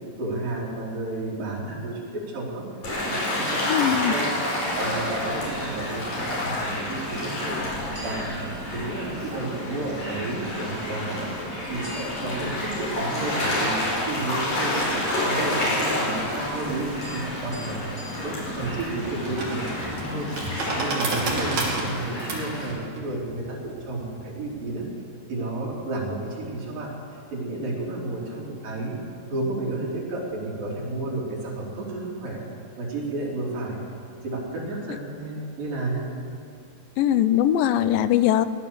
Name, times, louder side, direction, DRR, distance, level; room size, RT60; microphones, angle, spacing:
voice 1, 0.2-2.6 3.0-4.3 4.8-7.6 8.0-8.3 8.7-11.3 11.7-13.8 14.1-20.3 20.7-24.9 25.3-26.9 27.3-29.0 29.3-32.4 32.8-33.8 34.2-36.1, right 2 dB, 75° right, -4 dB, 4.8 m, -31 dB
Gull seagull / Waves surf, 2.8-22.7, left 1 dB, 55° left, 6.1 m, -29 dB
voice 2, 3.7-4.1 37.0-38.5, left 11 dB, 85° left, 13 dB, 2.3 m, -21 dB
sound 1, 4.6-19.1, right 1 dB, 15° right, 5.4 m, -45 dB
sound 2, 18.1-24.8, right 2 dB, 55° right, 3.8 m, -32 dB
18.0 x 11.5 x 6.8 m, 2.3 s
omnidirectional pair, 4.0 m